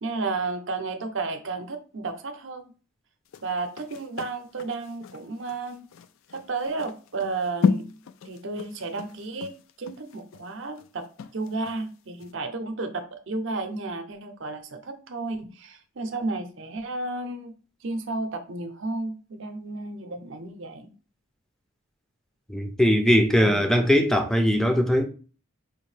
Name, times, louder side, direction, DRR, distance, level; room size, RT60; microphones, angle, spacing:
voice 1, 0.0-2.6 3.4-5.8 6.3-7.8 8.2-11.1 11.3-17.5 17.8-20.9 23.4-23.8, right 3 dB, 60° right, 0.6 m, -32 dB
sound 1, 3.3-11.8 12.2-12.3, left 5 dB, 65° left, 0.3 m, -33 dB
voice 2, 22.5-25.0, equal, ahead, 0.5 m, -20 dB
5.0 x 2.7 x 3.2 m
head